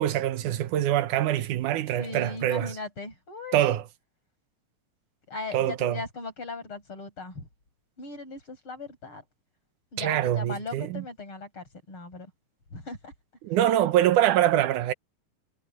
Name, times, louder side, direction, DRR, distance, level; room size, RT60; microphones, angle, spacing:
voice 1, 0.0-2.8 3.5-3.8 5.5-6.0 10.0-11.0 13.4-14.9, right 12 dB, 85° right, 2.5 m, -24 dB
voice 2, 2.0-3.6 5.3-7.5 8.0-9.2 9.9-12.3 12.7-13.1, left 3 dB, 45° left, 7.1 m, -38 dB
omnidirectional pair, 3.4 m